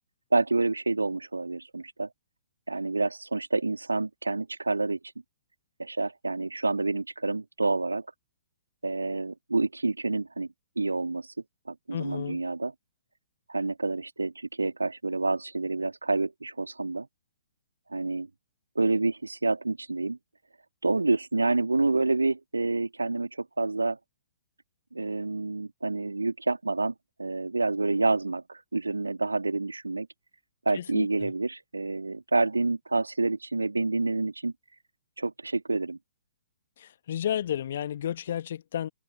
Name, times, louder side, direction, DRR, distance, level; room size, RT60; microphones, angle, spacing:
voice 1, 0.3-2.1 2.7-5.0 5.8-8.1 8.8-10.5 10.8-11.3 11.7-12.7 13.5-17.1 17.9-18.3 18.8-20.2 20.8-24.0 24.9-30.1 30.7-34.5 35.2-36.0, right 3 dB, 75° right, 3.4 m, -28 dB
voice 2, 11.9-12.4 30.7-31.3 36.8-38.9, left 10 dB, 50° left, 1.9 m, -32 dB
figure-of-eight pair, 120°, 0 cm